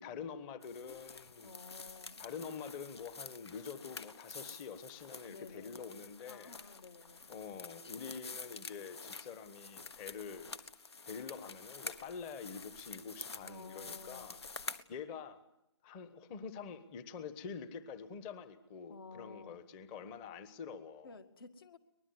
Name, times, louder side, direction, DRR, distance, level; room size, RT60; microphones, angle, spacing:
voice 1, 0.0-1.5 2.2-6.6 7.3-10.5 11.0-14.4 14.9-15.4 15.8-21.1, left 6 dB, 20° left, 13 dB, 1.1 m, -46 dB
sound 1, 0.6-14.8, left 4 dB, 75° left, 1.5 m, -49 dB
voice 2, 0.9-2.2 5.3-5.7 6.3-7.3 13.4-14.3 18.9-19.6 21.0-21.8, left 4 dB, 55° left, 9 dB, 2.2 m, -53 dB
23.5 x 20.5 x 9.5 m, 0.82 s
hypercardioid pair, 155°, 14 cm